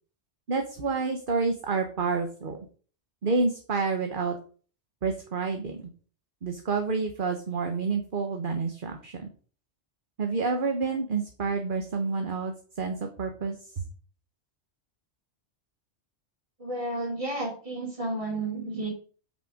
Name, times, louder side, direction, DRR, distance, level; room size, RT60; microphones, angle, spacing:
voice 1, 0.5-2.6 3.2-4.3 5.0-5.9 6.4-9.3 10.2-13.6, right 4 dB, 45° right, 4 dB, 1.2 m, -29 dB
voice 2, 16.6-18.9, right 2 dB, 25° right, 1 dB, 2.7 m, -32 dB
8.4 x 6.8 x 4.9 m, 0.41 s
omnidirectional pair, 1.2 m